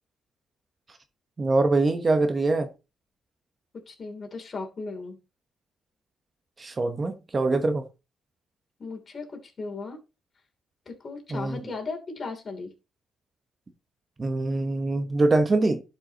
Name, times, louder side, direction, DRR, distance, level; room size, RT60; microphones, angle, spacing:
voice 1, 1.4-2.7 6.6-7.8 11.3-11.6 14.2-15.8, right 2 dB, 30° right, 1.1 m, -23 dB
voice 2, 3.9-5.2 8.8-10.0 10.8-12.7, left 3 dB, 40° left, 3.1 m, -36 dB
11.5 x 5.5 x 2.9 m
cardioid pair, 90°, 0 cm